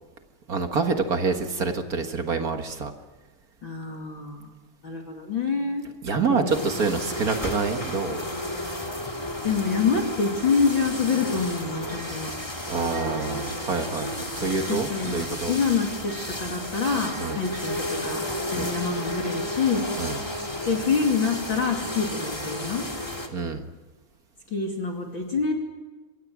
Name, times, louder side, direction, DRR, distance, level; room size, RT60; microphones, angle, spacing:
voice 1, 0.5-2.9 6.0-8.2 12.6-15.6 17.2-17.4 18.5-18.7 20.0-20.2 23.3-23.6, right 4 dB, 45° right, 6 dB, 1.2 m, -27 dB
voice 2, 3.6-4.5 4.8-5.9 6.3-7.1 9.4-12.3 14.7-18.2 18.5-19.8 20.7-22.8 24.5-25.5, left 5 dB, 40° left, 1 dB, 3.0 m, -26 dB
sound 1, 6.5-23.3, left 1 dB, 10° left, 1.9 m, -32 dB
27.5 x 24.5 x 6.2 m, 1.2 s
omnidirectional pair, 3.7 m